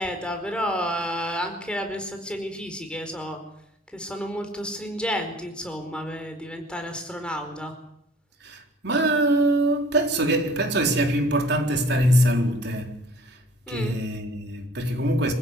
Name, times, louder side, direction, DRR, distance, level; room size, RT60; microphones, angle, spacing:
voice 1, 0.0-3.4 3.9-7.7 13.7-14.0, equal, 5° left, 4.6 m, -31 dB
voice 2, 8.4-13.4 13.7-15.3, right 1 dB, 60° right, 4.1 m, -23 dB
27.0 x 16.0 x 9.9 m
head